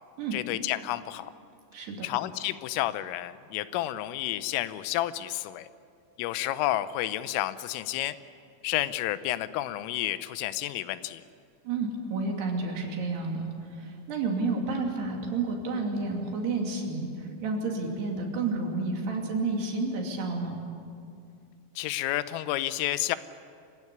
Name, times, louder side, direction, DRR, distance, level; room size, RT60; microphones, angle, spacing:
voice 1, 0.3-1.3 2.0-5.7 6.2-8.2 8.6-11.2 21.8-23.2, left 14 dB, 85° left, 14 dB, 3.4 m, -30 dB
voice 2, 1.7-2.1 11.6-20.6, right 3 dB, 60° right, 1 dB, 4.4 m, -30 dB
27.0 x 15.5 x 9.7 m, 2.4 s
omnidirectional pair, 5.8 m